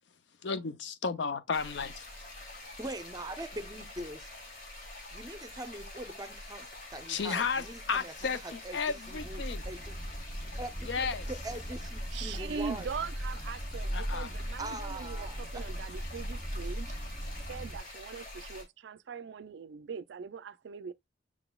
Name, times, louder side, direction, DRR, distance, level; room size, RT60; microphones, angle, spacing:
voice 1, 0.4-2.0 7.1-9.6 10.8-11.3 13.9-14.3, left 5 dB, 70° left, 0.6 m, -33 dB
sound 1, 1.5-18.6, left 1 dB, 45° left, 2.1 m, -46 dB
voice 2, 2.8-4.3 5.1-8.1 8.4-10.0 10.6-12.9 14.6-15.7, right 1 dB, 20° right, 0.6 m, -42 dB
sound 2, 9.2-17.8, equal, 5° left, 0.9 m, -38 dB
voice 3, 12.1-16.9 17.5-20.9, right 6 dB, 70° right, 0.4 m, -41 dB
6.0 x 3.9 x 2.2 m
head